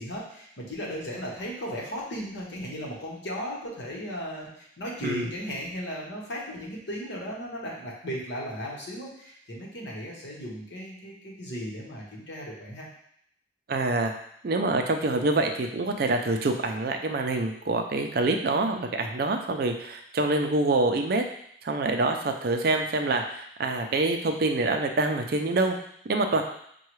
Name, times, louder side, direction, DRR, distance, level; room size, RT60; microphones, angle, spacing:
voice 1, 0.0-12.9, equal, 70° left, -3 dB, 1.1 m, -36 dB
voice 2, 13.7-14.1 14.4-21.2 21.6-25.8 26.1-26.4, right 2 dB, 55° right, 5 dB, 0.4 m, -26 dB
5.5 x 2.3 x 3.1 m, 0.70 s
head